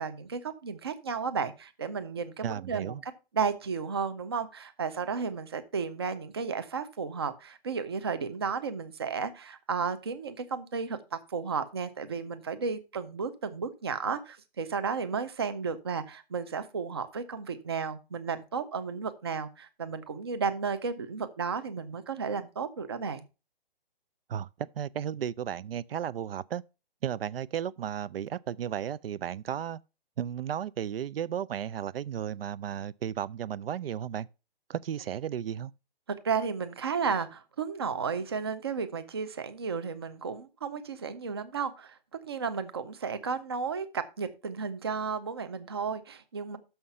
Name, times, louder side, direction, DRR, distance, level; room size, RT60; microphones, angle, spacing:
voice 1, 0.0-23.2 36.2-42.0 42.3-46.6, right 5 dB, 25° right, 0.5 m, -33 dB
voice 2, 2.4-3.0 24.3-26.6 27.0-29.8 30.2-34.3 34.7-35.7, right 9 dB, 75° right, 0.5 m, -34 dB
6.4 x 5.7 x 5.6 m
hypercardioid pair, 175°, 29 cm